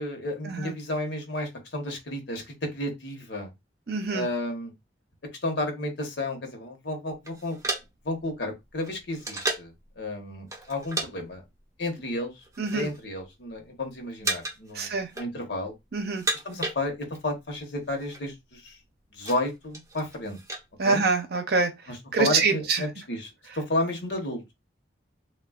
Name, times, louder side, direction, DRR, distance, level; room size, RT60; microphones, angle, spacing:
voice 1, 0.0-3.5 4.1-4.7 5.4-7.6 8.0-11.4 11.8-12.4 12.7-15.7 16.4-18.8 19.1-20.4 20.8-21.0 21.9-24.4, left 1 dB, 75° left, 0.9 m, -32 dB
voice 2, 3.9-4.3 12.6-12.9 14.7-15.1 15.9-16.2 20.8-21.7 22.1-22.8, right 4 dB, 60° right, 0.6 m, -25 dB
sound 1, 7.2-9.8 10.5-11.1 11.4-11.6 12.3-13.0 13.3-13.8 14.2-14.7 15.0-15.7 16.0-17.3 17.6-17.7 17.9-18.2 18.7-20.7, right 2 dB, 20° right, 0.6 m, -34 dB
3.3 x 2.3 x 2.3 m
head